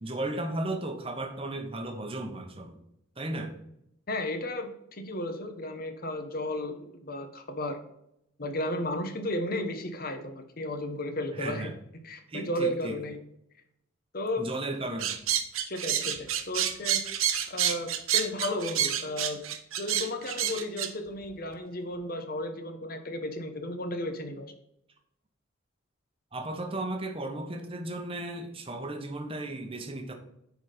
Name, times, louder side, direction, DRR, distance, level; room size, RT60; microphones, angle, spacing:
voice 1, 0.0-2.8 3.2-3.5 11.4-11.7 12.3-13.0 14.4-15.2 26.3-30.1, right 2 dB, 25° right, 4 dB, 1.1 m, -35 dB
voice 2, 4.1-7.8 8.4-11.7 12.0-13.2 14.1-14.5 15.6-17.0 17.5-19.4 19.8-24.5, left 1 dB, 45° left, 7 dB, 1.1 m, -34 dB
sound 1, 15.0-20.9, right 10 dB, 90° right, 0.8 m, -28 dB
9.6 x 4.3 x 5.1 m, 0.79 s
head